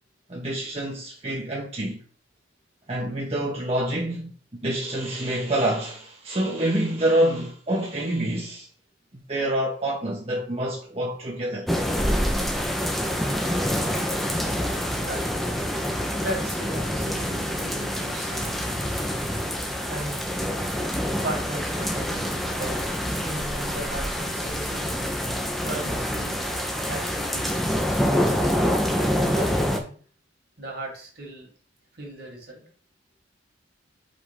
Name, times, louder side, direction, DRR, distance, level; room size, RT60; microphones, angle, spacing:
voice 1, 0.3-2.0 2.9-4.3 4.6-8.7 9.1-11.7, right 1 dB, 30° right, 0.9 m, -27 dB
sound 1, 11.7-29.8, equal, ahead, 0.7 m, -26 dB
voice 2, 16.1-18.5 19.9-20.3 21.0-22.9 23.2-25.0 25.6-26.4 26.9-28.5 28.9-29.9 30.6-31.5 32.0-32.6, right 1 dB, 55° right, 2.1 m, -36 dB
5.1 x 3.5 x 5.2 m
head